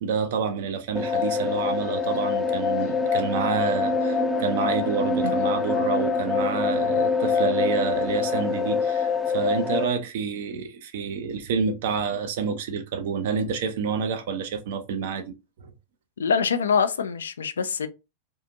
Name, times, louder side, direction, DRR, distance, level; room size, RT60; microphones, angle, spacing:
voice 1, 0.0-15.2, right 6 dB, 55° right, 0.5 m, -28 dB
sound 1, 0.9-9.8, left 5 dB, 10° left, 0.5 m, -25 dB
voice 2, 16.2-17.9, left 6 dB, 70° left, 0.3 m, -24 dB
2.7 x 2.4 x 2.6 m
figure-of-eight pair, 90°, 0 cm